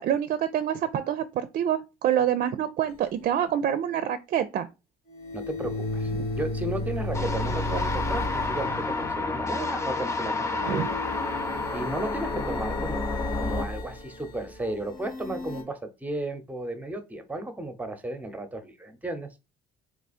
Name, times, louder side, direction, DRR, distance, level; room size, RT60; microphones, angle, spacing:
voice 1, 0.0-4.7 6.2-6.3 10.7-10.9, right 10 dB, 55° right, 0.4 m, -26 dB
sound 1, 2.9-3.0 5.1-9.5 10.4-15.6, left 1 dB, 65° left, 2.1 m, -34 dB
voice 2, 5.3-11.0 11.7-19.3, right 1 dB, 10° right, 0.9 m, -34 dB
sound 2, 7.1-13.7, left 3 dB, 15° left, 0.6 m, -30 dB
3.6 x 3.1 x 4.2 m
cardioid pair, 110°, 17 cm